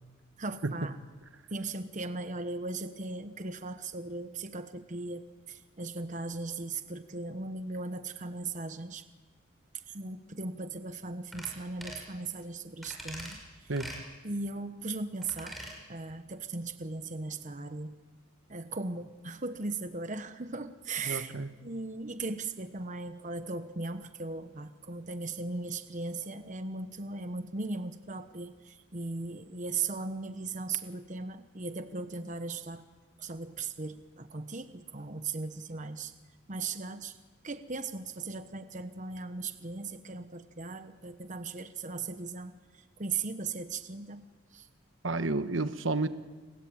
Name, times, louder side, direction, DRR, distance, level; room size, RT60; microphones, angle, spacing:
voice 1, 0.4-1.0 1.5-9.0 9.9-13.4 14.2-15.6 15.9-17.9 18.5-21.3 21.6-32.8 33.2-36.1 36.5-37.2 37.4-44.2 44.5-44.7, right 3 dB, 35° right, 9 dB, 1.0 m, -38 dB
sound 1, 11.3-11.5 11.8-12.1 12.8-13.4 13.8-14.0 15.2-15.8 16.1-16.2, equal, ahead, 5.9 m, -43 dB
voice 2, 21.0-21.5 45.0-46.1, right 2 dB, 65° right, 10 dB, 1.2 m, -30 dB
29.5 x 21.5 x 8.8 m, 1.3 s
head